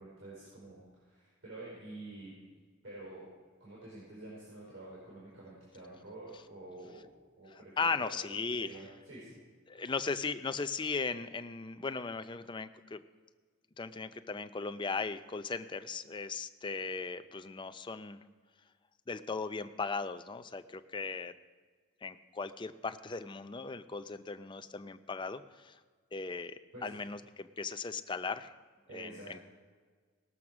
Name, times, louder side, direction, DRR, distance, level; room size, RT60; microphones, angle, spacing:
voice 1, 0.0-2.3 2.8-3.3 3.6-7.1 7.4-8.1 8.6-9.4 26.7-27.0 28.9-29.3, right 2 dB, 80° right, -6 dB, 4.7 m, -48 dB
voice 2, 7.8-8.8 9.7-13.0 13.8-18.2 19.1-21.3 22.0-25.7 26.1-26.6 26.8-28.5 28.9-29.4, left 4 dB, 25° left, 10 dB, 0.5 m, -37 dB
19.0 x 7.0 x 6.1 m, 1.5 s
head